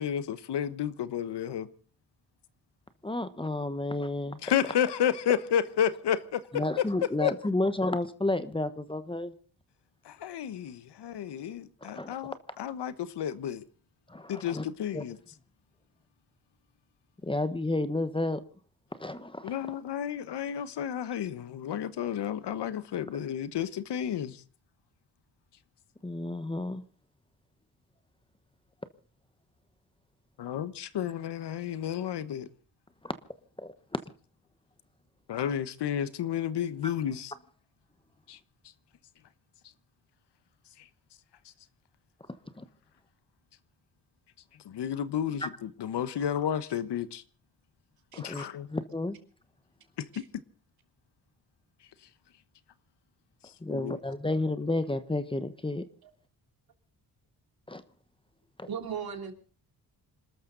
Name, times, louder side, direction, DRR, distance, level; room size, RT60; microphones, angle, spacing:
voice 1, 0.0-1.7 4.4-7.3 10.0-13.6 14.3-15.2 19.4-24.4 30.4-32.5 35.3-37.3 38.3-38.4 44.6-47.2 48.2-48.7 50.0-50.2 53.7-54.0, left 9 dB, 80° left, 1.3 m, -31 dB
voice 2, 3.0-4.4 6.5-9.3 11.8-12.1 14.1-14.6 14.9-15.0 17.2-18.4 19.0-19.5 26.0-26.8 33.0-33.1 33.6-33.7 42.6-42.7 48.1-49.2 53.6-55.8 57.7-57.8 58.6-58.7, left 2 dB, 15° left, 1.1 m, -31 dB
voice 3, 48.1-48.5 50.1-50.3 56.0-56.1 58.6-59.3, right 7 dB, 60° right, 3.3 m, -38 dB
27.0 x 13.0 x 4.0 m
wide cardioid pair, 135°, 40 cm